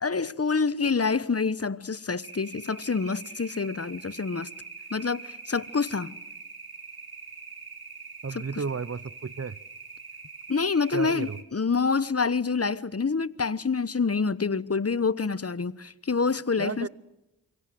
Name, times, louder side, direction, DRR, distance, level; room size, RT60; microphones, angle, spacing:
voice 1, 0.0-4.5 4.9-6.1 10.5-16.9, left 4 dB, 35° left, 1.1 m, -27 dB
sound 1, 2.2-11.4, right 4 dB, 65° right, 2.7 m, -44 dB
voice 2, 8.2-9.6 10.9-11.4 16.6-16.9, right 5 dB, 40° right, 0.9 m, -33 dB
27.5 x 23.5 x 7.9 m
cardioid pair, 45°, 40 cm